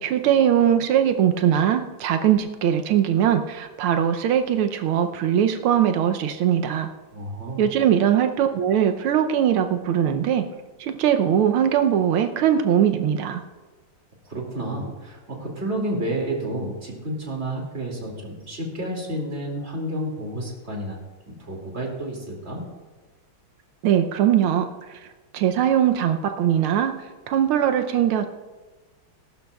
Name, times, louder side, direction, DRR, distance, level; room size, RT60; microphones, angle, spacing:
voice 1, 0.0-6.9 7.6-10.4 10.8-13.4 23.8-24.7 25.3-26.9 27.3-28.3, right 9 dB, 90° right, 7 dB, 1.6 m, -21 dB
voice 2, 7.1-7.7 14.2-21.0 21.3-22.6, right 1 dB, 30° right, -1 dB, 2.6 m, -30 dB
19.5 x 11.5 x 2.3 m, 1.2 s
omnidirectional pair, 2.3 m